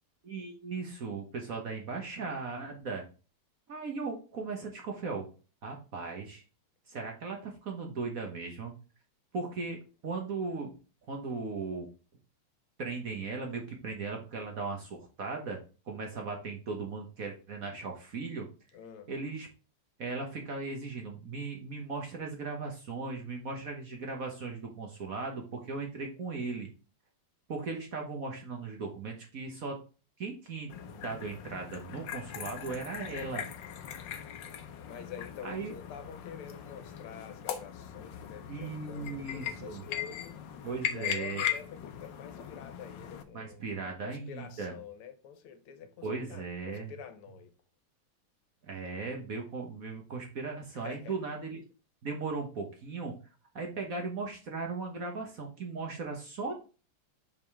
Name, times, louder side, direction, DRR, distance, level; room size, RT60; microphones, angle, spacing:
voice 1, 0.2-3.0 3.7-5.3 5.6-6.4 6.9-8.7 9.3-10.7 11.1-11.9 12.8-15.6 15.9-18.5 19.1-19.5 20.0-26.7 27.5-29.8 30.2-33.4 35.4-35.7 38.5-39.8 40.6-41.4 43.3-44.7 46.0-46.9 48.6-51.6 52.0-53.2 53.5-56.5, right 4 dB, 50° right, 1.2 m, -37 dB
voice 2, 18.7-19.1 34.8-40.4 40.9-47.5 50.7-51.2, left 8 dB, 85° left, 1.9 m, -47 dB
sound 1, 30.7-43.2, left 9 dB, 65° left, 1.3 m, -39 dB
5.4 x 5.1 x 3.5 m
omnidirectional pair, 2.4 m